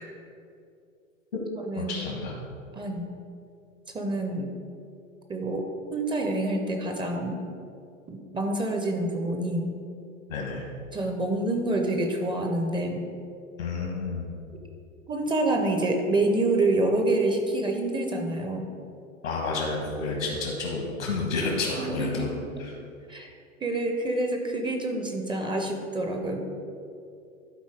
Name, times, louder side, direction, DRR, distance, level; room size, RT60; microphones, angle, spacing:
voice 1, 1.7-2.3 10.3-10.6 13.6-14.3 19.2-22.3 22.6-22.8, left 3 dB, 80° left, -1 dB, 1.6 m, -30 dB
voice 2, 2.7-3.1 3.9-4.5 5.3-7.4 8.1-9.7 10.9-13.0 15.1-18.7 21.8-22.3 23.1-23.3 23.6-26.4, right 2 dB, 10° right, 4 dB, 0.6 m, -27 dB
11.0 x 4.1 x 4.9 m, 2.5 s
figure-of-eight pair, 95°, 39 cm